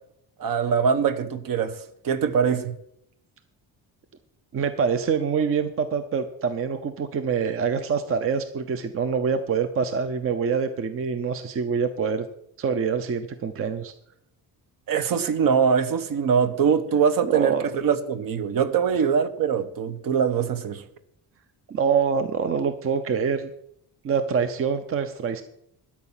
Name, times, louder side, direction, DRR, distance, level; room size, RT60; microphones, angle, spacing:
voice 1, 0.4-1.8 2.0-2.7 14.9-20.8, right 7 dB, 55° right, 1.1 m, -23 dB
voice 2, 4.5-12.3 12.6-13.9 17.2-17.7 21.7-23.5 24.0-25.4, right 6 dB, 35° right, 0.7 m, -25 dB
12.5 x 5.9 x 8.9 m
cardioid pair, 170°, 40 cm